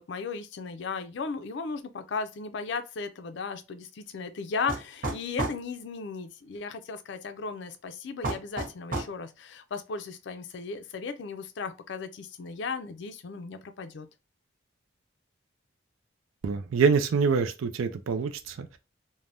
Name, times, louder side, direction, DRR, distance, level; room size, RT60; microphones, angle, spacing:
voice 1, 0.0-14.1, left 4 dB, 60° left, 0.4 m, -36 dB
sound 1, 4.7-5.6 8.2-9.2, right 2 dB, 45° right, 0.8 m, -31 dB
voice 2, 16.4-18.8, right 5 dB, 85° right, 0.4 m, -25 dB
3.3 x 2.1 x 2.5 m
head